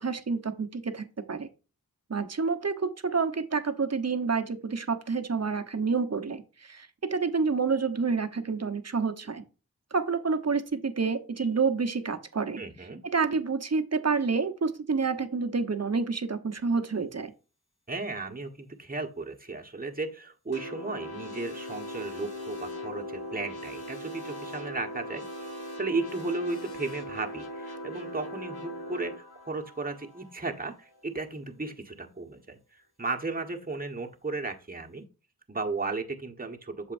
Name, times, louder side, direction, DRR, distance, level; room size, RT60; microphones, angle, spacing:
voice 1, 0.0-1.5 2.1-9.4 9.9-12.6 13.0-17.3, right 4 dB, 45° right, 7 dB, 1.1 m, -28 dB
voice 2, 12.6-13.0 17.9-25.5 25.8-35.1 35.5-36.9, right 3 dB, 25° right, 3 dB, 1.4 m, -35 dB
sound 1, 20.5-31.0, left 1 dB, 80° left, 2.3 m, -40 dB
8.2 x 6.7 x 2.6 m, 0.34 s
wide cardioid pair, 60°, 37 cm